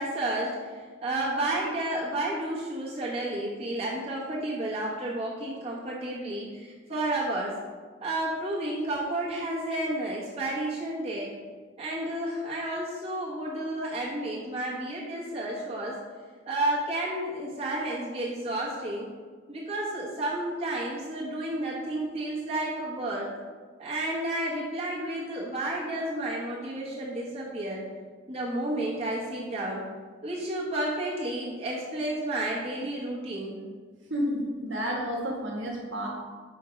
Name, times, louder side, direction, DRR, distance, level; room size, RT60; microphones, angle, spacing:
voice 1, 0.0-7.6 8.0-11.3 11.8-16.0 16.5-19.1 19.5-23.3 23.8-27.8 28.3-29.8 30.2-33.6, right 1 dB, 30° right, -7 dB, 1.3 m, -31 dB
voice 2, 34.1-36.1, equal, 60° right, -1 dB, 1.4 m, -30 dB
6.0 x 4.6 x 5.1 m, 1.5 s
head